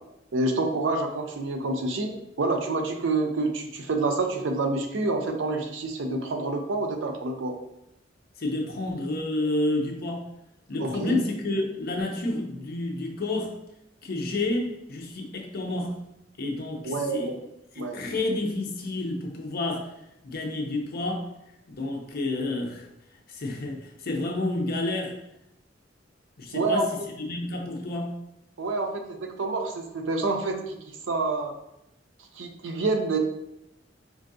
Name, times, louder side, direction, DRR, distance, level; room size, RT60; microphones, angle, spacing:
voice 1, 0.3-7.6 10.8-11.2 16.8-17.4 17.8-18.0 26.5-26.9 28.6-30.8 31.1-31.5 32.4-33.2, right 3 dB, 80° right, 4 dB, 0.5 m, -27 dB
voice 2, 8.4-10.3 10.7-13.6 14.0-16.0 16.4-17.3 17.7-19.9 20.2-21.3 21.7-22.9 23.3-25.2 26.4-26.9 27.2-28.2, left 2 dB, 55° left, 2 dB, 0.6 m, -30 dB
4.5 x 2.5 x 2.6 m, 0.84 s
head